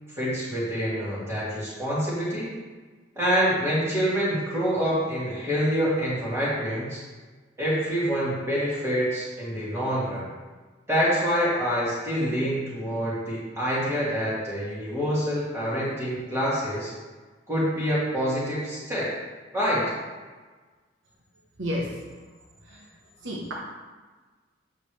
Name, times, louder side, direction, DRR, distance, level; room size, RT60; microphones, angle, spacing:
voice 1, 0.1-2.5 3.2-7.0 7.6-10.3 10.9-16.9 17.5-19.1 19.5-19.9, equal, 15° right, -8 dB, 2.6 m, -26 dB
voice 2, 21.6-21.9 22.7-22.8 23.2-23.5, equal, 80° right, -2 dB, 1.1 m, -30 dB
8.3 x 6.7 x 3.3 m, 1.4 s
head